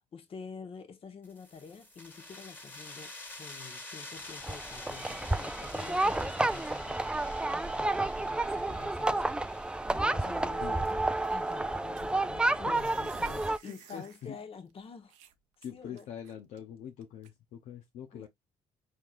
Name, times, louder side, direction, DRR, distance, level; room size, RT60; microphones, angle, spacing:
voice 1, 0.0-3.1 3.4-15.1 15.6-16.1 18.1-18.3, left 5 dB, 45° left, 1.4 m, -48 dB
sound 1, 1.2-12.6, left 2 dB, 15° left, 1.8 m, -48 dB
sound 2, 4.4-13.6, right 2 dB, 5° right, 0.4 m, -30 dB
sound 3, 7.3-8.3 8.5-9.0 9.4-9.5 9.7-9.9 10.2-11.4 12.0-14.3 14.7-14.8 15.1-16.6 17.0-17.3, right 10 dB, 75° right, 0.8 m, -56 dB
voice 2, 12.3-12.9 13.7-14.4 15.6-18.3, left 9 dB, 70° left, 0.8 m, -44 dB
4.7 x 3.6 x 2.5 m
supercardioid pair, 65°, 13 cm